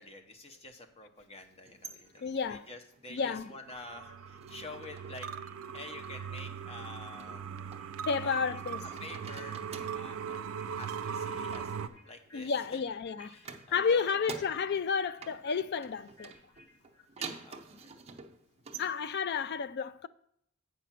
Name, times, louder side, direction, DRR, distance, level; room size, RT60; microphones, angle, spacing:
voice 1, 0.0-2.2 2.5-5.3 5.7-7.4 8.2-8.6 9.0-9.6 9.9-10.5 10.8-11.7 12.0-12.8 13.3-14.3 17.2-17.9, left 2 dB, 30° left, 0.8 m, -48 dB
sound 1, 1.5-3.7 4.0-5.3 5.6-6.1 7.2-8.6 8.8-10.1 11.0-12.9 13.4-14.9 15.2-18.9, right 5 dB, 30° right, 0.7 m, -48 dB
sound 2, 1.9-7.4 7.7-17.9, left 2 dB, 65° left, 2.2 m, -61 dB
voice 2, 2.2-2.6 3.1-3.5 8.1-8.8 12.3-16.3 18.8-20.1, left 5 dB, 50° left, 0.4 m, -31 dB
sound 3, 3.7-11.9, right 7 dB, 70° right, 0.5 m, -40 dB
8.1 x 5.1 x 5.9 m
head